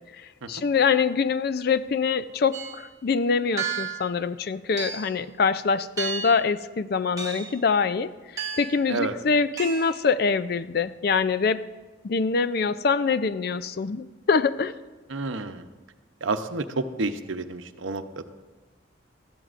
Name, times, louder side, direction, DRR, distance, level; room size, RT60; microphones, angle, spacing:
voice 1, 0.5-8.1 8.6-11.6 12.0-14.7, left 5 dB, 55° left, 14 dB, 0.4 m, -24 dB
sound 1, 2.5-2.8 3.6-4.1 4.8-5.2 6.0-6.5 7.2-7.6 8.4-8.8 9.6-10.0, right 6 dB, 20° right, 1.5 m, -32 dB
voice 2, 15.1-15.6 16.2-18.2, right 3 dB, 90° right, 8 dB, 0.7 m, -30 dB
19.0 x 13.5 x 2.5 m, 1.2 s
head